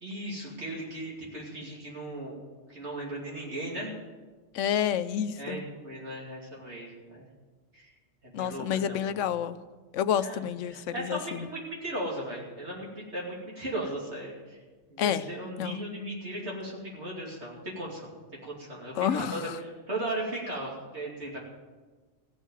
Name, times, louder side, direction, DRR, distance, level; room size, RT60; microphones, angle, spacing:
voice 1, 0.0-2.4 2.7-3.9 5.4-7.3 7.7-7.9 8.2-9.2 10.2-10.4 10.7-14.6 14.9-18.1 18.4-21.4, right 1 dB, 60° right, -4 dB, 2.9 m, -37 dB
voice 2, 4.5-5.6 8.3-9.6 9.9-11.5 15.0-15.2 15.6-15.8 18.9-19.5, left 9 dB, 75° left, 13 dB, 1.0 m, -29 dB
16.0 x 6.4 x 9.1 m, 1.3 s
omnidirectional pair, 1.3 m